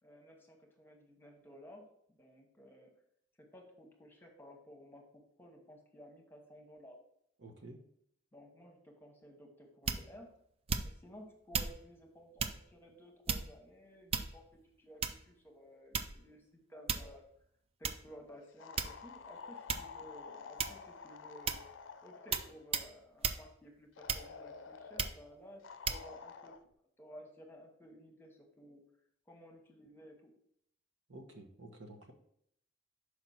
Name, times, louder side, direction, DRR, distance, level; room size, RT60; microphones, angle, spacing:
voice 1, 0.0-2.9 3.5-7.0 8.3-10.3 10.8-14.4 14.8-17.2 17.8-21.6 22.0-26.5 27.0-28.8 29.3-30.3, equal, 10° left, 2 dB, 1.1 m, -55 dB
voice 2, 7.4-7.8 31.1-32.1, right 2 dB, 70° right, 3 dB, 1.1 m, -51 dB
sound 1, 9.9-10.2 10.7-11.1 11.5-11.8 12.4-12.6 13.3-13.7 14.1-14.5 15.0-15.3 15.9-16.3 16.9-17.2 17.8-18.0 18.8-19.2 19.7-19.9 20.6-20.9 21.5-21.7 22.3-22.5 22.7-22.9 23.2-23.4 24.1-24.5 25.0-25.2 25.9-26.0, right 6 dB, 30° right, 0.4 m, -35 dB
sound 2, 18.6-22.6 24.0-25.1 25.6-26.6, left 5 dB, 85° left, 0.5 m, -50 dB
6.1 x 4.9 x 4.2 m, 0.69 s
head